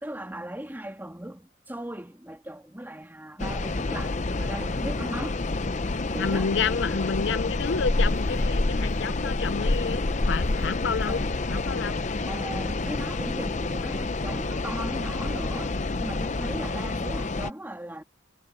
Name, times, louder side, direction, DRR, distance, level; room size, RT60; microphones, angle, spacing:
voice 1, 0.0-5.4 6.1-6.5 11.1-11.2 12.3-15.7 16.0-18.0, right 1 dB, 10° right, 1.7 m, -37 dB
sound 1, 3.4-17.5, left 2 dB, 40° left, 0.7 m, -28 dB
voice 2, 6.2-11.2 11.5-12.0, left 5 dB, 80° left, 0.5 m, -29 dB
head